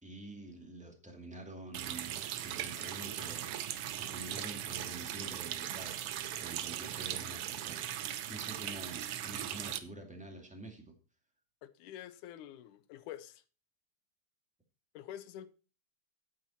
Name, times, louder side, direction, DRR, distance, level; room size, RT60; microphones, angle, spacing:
voice 1, 0.0-6.0 6.4-10.9, right 2 dB, 5° right, 1.5 m, -48 dB
Water tap faucet, 1.7-9.8, right 11 dB, 80° right, 1.3 m, -39 dB
voice 2, 11.6-13.4 14.9-15.5, left 11 dB, 80° left, 2.3 m, -47 dB
9.3 x 8.7 x 4.3 m
omnidirectional pair, 3.5 m